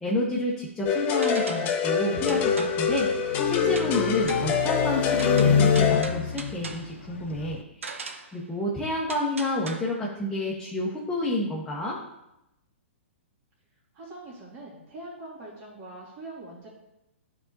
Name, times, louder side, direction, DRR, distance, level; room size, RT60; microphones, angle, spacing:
voice 1, 0.0-12.0, left 1 dB, 10° left, -5 dB, 1.0 m, -30 dB
sound 1, 0.8-6.0, left 6 dB, 30° left, 0.7 m, -25 dB
sound 2, 1.2-1.8 2.3-2.9 3.8-4.0 4.3-4.6 5.2-6.9 7.8-8.4 9.1-9.8, right 4 dB, 80° right, 0.7 m, -39 dB
sound 3, 2.1-7.6, left 6 dB, 70° left, 0.5 m, -28 dB
voice 2, 13.9-16.7, right 2 dB, 30° right, -6 dB, 2.3 m, -42 dB
11.0 x 4.1 x 2.7 m, 0.88 s
figure-of-eight pair, 115°, 7 cm